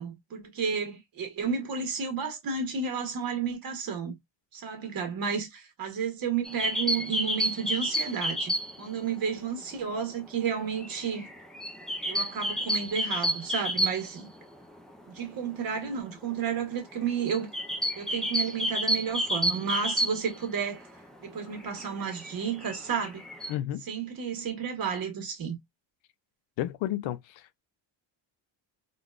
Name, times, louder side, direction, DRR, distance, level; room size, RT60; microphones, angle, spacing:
voice 1, 0.0-4.2 4.5-8.5 8.8-11.3 12.1-14.3 15.1-17.5 18.0-20.9 21.2-23.2 23.9-25.6, right 6 dB, 50° right, 1.3 m, -32 dB
sound 1, 6.4-8.9 9.2-9.3 9.6-14.4 14.8-14.9 15.1-15.3 15.8-20.8 21.3-23.5, equal, ahead, 0.4 m, -30 dB
voice 2, 23.5-23.9 26.6-27.6, left 13 dB, 75° left, 0.5 m, -32 dB
3.7 x 2.4 x 2.3 m
cardioid pair, 150°, 47 cm